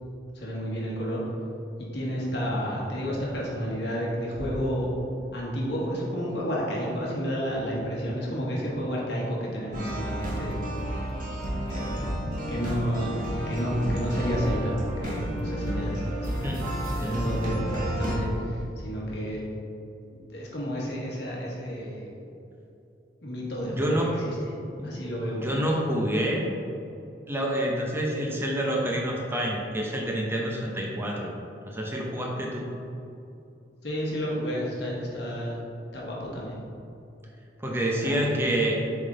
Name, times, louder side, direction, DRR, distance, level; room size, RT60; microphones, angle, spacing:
voice 1, 0.3-1.2 1.8-4.9 5.3-10.6 11.7-12.1 12.5-13.1 13.5-16.5 17.0-19.4 20.3-22.2 23.2-24.0 24.2-24.3 24.8-25.4 33.8-35.6 35.9-36.6 37.7-38.3, equal, 65° left, -4 dB, 1.5 m, -31 dB
sound 1, 9.7-18.2, equal, 50° right, 1.2 m, -31 dB
voice 2, 23.6-24.1 24.8-24.9 25.3-26.5 27.3-31.3 31.7-32.7 37.6-38.8, right 1 dB, 15° right, -2 dB, 0.7 m, -27 dB
7.3 x 3.7 x 3.8 m, 2.7 s
head